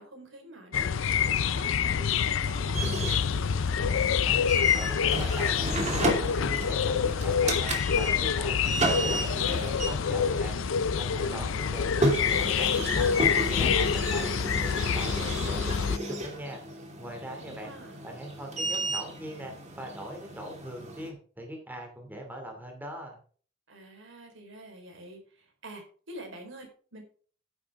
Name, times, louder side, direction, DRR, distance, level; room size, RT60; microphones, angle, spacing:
voice 1, 0.0-2.9 11.2-11.8 17.3-18.0 23.7-25.2 25.6-27.0, right 1 dB, 70° right, 3 dB, 4.4 m, -45 dB
sound 1, 0.7-16.0, left 7 dB, 70° left, 0.5 m, -27 dB
sound 2, 2.7-21.1, right 1 dB, 35° right, 2.7 m, -33 dB
voice 2, 4.7-10.6 11.0-14.3 14.6-16.6 17.0-17.7 18.0-23.2, equal, 10° right, 2 dB, 2.6 m, -41 dB
11.0 x 10.0 x 3.6 m, 0.42 s
head